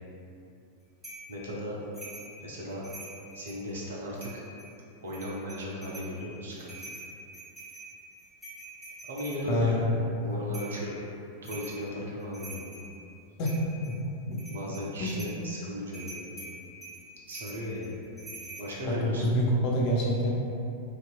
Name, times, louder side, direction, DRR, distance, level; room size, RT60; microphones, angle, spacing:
sound 1, 1.0-1.3 1.9-2.3 2.7-3.6 4.2-4.7 5.1-6.1 6.5-9.4 10.5-10.8 11.4-11.8 12.2-12.9 13.4-13.9 14.3-15.4 15.9-18.7, right 2 dB, ahead, 1.3 m, -45 dB
voice 1, 1.3-1.8 2.4-2.8 3.3-4.4 5.0-6.7 9.1-9.8 10.2-11.0 11.4-12.7 14.5-16.3 17.3-17.9 18.6-19.2, equal, 65° right, -4 dB, 0.5 m, -36 dB
voice 2, 9.5-9.9 13.4-13.5 13.8-14.0 14.3-14.4 15.0-15.4 18.9-20.3, left 1 dB, 45° left, -3 dB, 0.4 m, -27 dB
2.6 x 2.2 x 2.3 m, 2.6 s
figure-of-eight pair, 90°, 0 cm